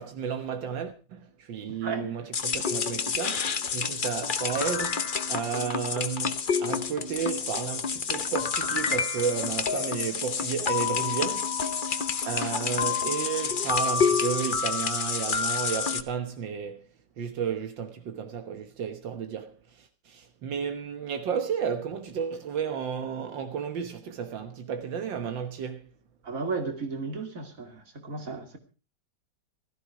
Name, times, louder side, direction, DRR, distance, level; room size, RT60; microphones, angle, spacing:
voice 1, 0.0-11.6 12.2-16.9 17.2-25.9, right 7 dB, 80° right, 1.9 m, -32 dB
sound 1, 2.3-16.0, left 6 dB, 40° left, 0.7 m, -28 dB
voice 2, 26.3-27.7 28.0-28.6, right 4 dB, 45° right, 2.8 m, -33 dB
16.0 x 14.0 x 4.7 m
omnidirectional pair, 2.0 m